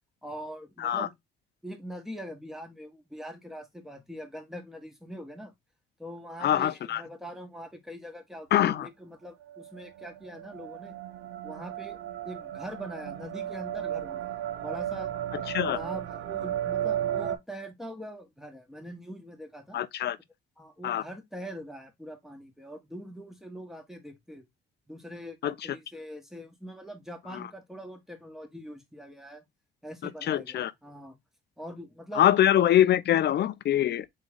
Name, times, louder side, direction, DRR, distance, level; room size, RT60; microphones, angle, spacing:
voice 1, 0.2-1.1 1.6-5.5 6.0-10.9 11.4-12.0 12.2-15.1 15.6-19.8 20.6-24.4 24.9-29.4 29.8-31.2 31.6-32.3, equal, ahead, 1.4 m, -43 dB
voice 2, 6.4-7.0 8.5-8.9 15.5-15.8 19.7-20.2 20.8-21.0 25.4-25.5 27.3-27.5 30.0-30.7 32.1-34.1, left 11 dB, 60° left, 0.5 m, -24 dB
sound 1, 9.4-17.4, right 11 dB, 90° right, 0.8 m, -34 dB
3.8 x 3.7 x 3.5 m
cardioid pair, 90°, 20 cm